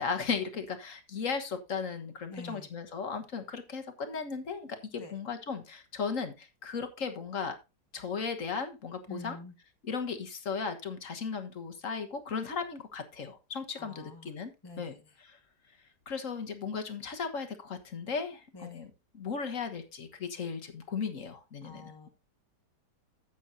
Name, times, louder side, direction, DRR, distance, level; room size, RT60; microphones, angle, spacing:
voice 1, 0.0-7.6 7.9-9.4 9.8-14.5 14.8-15.4 16.1-22.1, left 5 dB, 50° left, 7 dB, 1.7 m, -36 dB
voice 2, 2.3-2.7 5.0-5.1 9.1-9.5 13.8-14.3 14.6-15.2 18.5-18.8 21.6-22.1, left 2 dB, 15° left, 2 dB, 1.0 m, -46 dB
13.0 x 8.4 x 2.7 m, 0.25 s
omnidirectional pair, 1.9 m